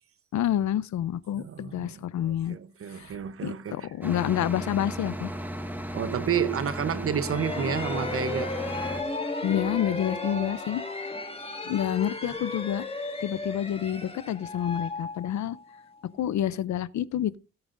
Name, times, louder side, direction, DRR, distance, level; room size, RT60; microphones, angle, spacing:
voice 1, 0.3-2.6 2.9-3.1 3.4-5.3 9.4-10.8 11.7-12.8 13.2-15.6 16.2-17.4, left 11 dB, 70° left, 0.6 m, -28 dB
voice 2, 1.3-3.9 5.9-8.5, right 8 dB, 50° right, 0.9 m, -30 dB
sound 1, 4.0-9.0, equal, 5° right, 1.3 m, -35 dB
sound 2, 7.1-15.8, left 3 dB, 20° left, 2.0 m, -35 dB
17.0 x 8.8 x 2.6 m
cardioid pair, 115°, 29 cm